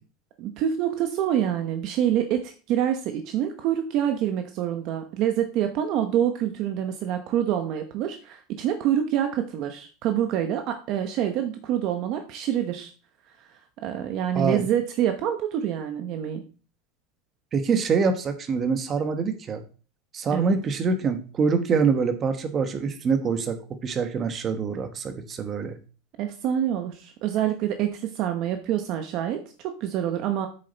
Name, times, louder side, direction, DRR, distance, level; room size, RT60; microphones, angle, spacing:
voice 1, 0.4-12.9 13.8-16.4 20.3-20.6 26.2-30.5, right 10 dB, 45° right, 7 dB, 0.9 m, -26 dB
voice 2, 14.3-14.7 17.5-19.6 20.1-25.8, right 5 dB, 25° right, 8 dB, 1.2 m, -25 dB
8.3 x 6.7 x 4.0 m, 0.37 s
supercardioid pair, 160°, 0 cm